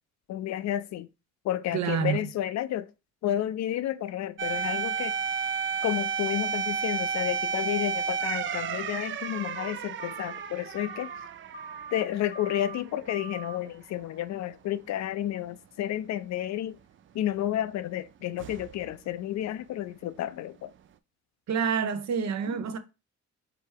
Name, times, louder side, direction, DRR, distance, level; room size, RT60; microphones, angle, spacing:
voice 1, 0.3-1.1 1.4-2.9 3.2-5.1 5.8-11.1 11.9-16.7 17.1-20.7, left 12 dB, 65° left, 0.5 m, -31 dB
voice 2, 1.7-2.3 21.5-22.8, right 7 dB, 65° right, 0.7 m, -28 dB
sound 1, 4.4-13.0 13.4-13.5 18.4-18.9, right 6 dB, 40° right, 0.4 m, -32 dB
sound 2, 8.5-8.9 9.2-9.7 10.0-10.5 10.8-11.2 11.5-12.0 12.3-12.8 13.1-13.6, right 4 dB, 30° left, 0.7 m, -42 dB
3.4 x 3.0 x 4.6 m
cardioid pair, 90°, 30 cm